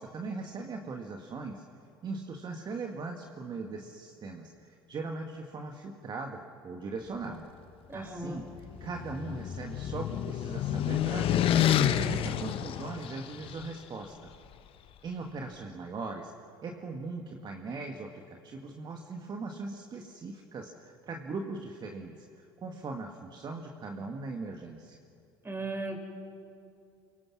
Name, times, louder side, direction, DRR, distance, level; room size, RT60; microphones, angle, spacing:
voice 1, 0.0-1.7 2.0-7.5 7.9-11.5 11.8-14.3 15.0-16.3 16.6-25.0, right 3 dB, 35° right, 3 dB, 1.9 m, -40 dB
voice 2, 7.9-8.4 25.4-26.0, right 2 dB, 20° right, 4 dB, 4.6 m, -36 dB
sound 1, 8.4-13.6, left 10 dB, 50° left, 1.2 m, -29 dB
29.0 x 24.0 x 6.1 m, 2.5 s
hypercardioid pair, 65°, 12 cm